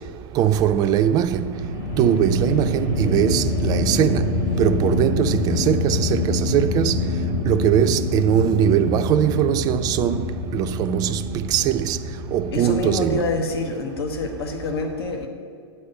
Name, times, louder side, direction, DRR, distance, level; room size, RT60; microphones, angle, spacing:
voice 1, 0.4-1.5 2.0-4.3 4.6-7.0 7.5-10.2 10.5-11.2 11.5-12.0 12.3-13.3, right 10 dB, 30° right, 0.3 m, -21 dB
sound 1, 1.3-13.6, left 2 dB, 55° left, 1.3 m, -26 dB
voice 2, 12.5-15.3, left 3 dB, 70° left, 1.0 m, -26 dB
8.3 x 4.3 x 6.7 m
figure-of-eight pair, 100°, 13 cm